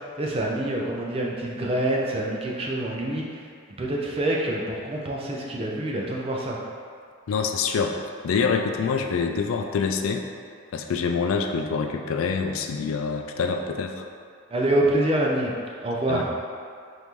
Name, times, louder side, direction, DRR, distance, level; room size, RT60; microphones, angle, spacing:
voice 1, 0.0-3.5 3.8-6.6 14.5-15.5 15.8-16.3, right 1 dB, 30° right, -2 dB, 0.5 m, -26 dB
voice 2, 7.3-8.0 8.2-10.2 10.7-14.0 16.1-16.2, left 5 dB, 85° left, 4 dB, 0.4 m, -26 dB
5.3 x 2.6 x 3.1 m, 2.2 s
head